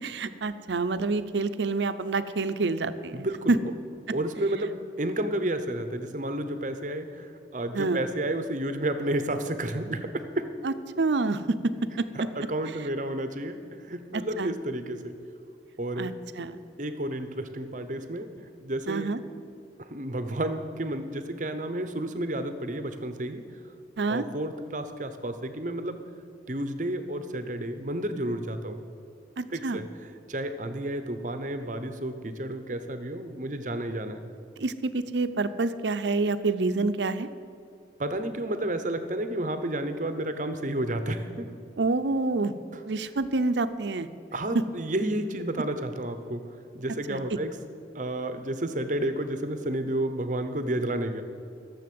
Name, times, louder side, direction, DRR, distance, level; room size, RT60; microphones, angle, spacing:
voice 1, 0.0-3.6 7.7-8.0 10.6-12.1 14.1-14.5 16.0-16.6 18.9-19.2 24.0-24.2 29.4-29.8 34.6-37.3 41.8-42.5 42.9-44.1 44.5-44.6 47.1-47.4, right 3 dB, 80° right, 12 dB, 0.6 m, -27 dB
voice 2, 3.1-3.6 4.1-10.5 12.1-13.6 13.8-15.1 15.8-16.1 16.8-18.3 18.6-19.1 19.9-23.4 24.1-26.0 26.5-28.8 29.5-29.8 30.3-34.2 38.0-41.5 44.3-46.4 46.7-47.5 47.9-51.2, right 1 dB, 45° right, 9 dB, 0.9 m, -31 dB
14.0 x 7.2 x 7.7 m, 2.5 s
head